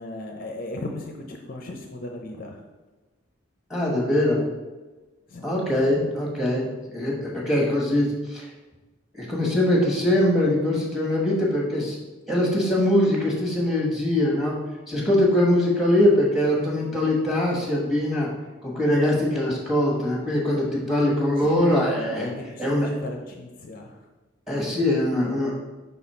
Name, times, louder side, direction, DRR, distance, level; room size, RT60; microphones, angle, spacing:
voice 1, 0.0-2.6 5.3-5.5 21.4-24.0, left 2 dB, 45° left, 3 dB, 0.5 m, -36 dB
voice 2, 3.7-4.4 5.4-8.4 9.1-12.0 12.3-14.5 14.9-18.3 18.6-22.3 22.6-23.0 24.5-25.5, left 1 dB, ahead, -3 dB, 1.2 m, -22 dB
5.4 x 4.2 x 4.3 m, 1.2 s
head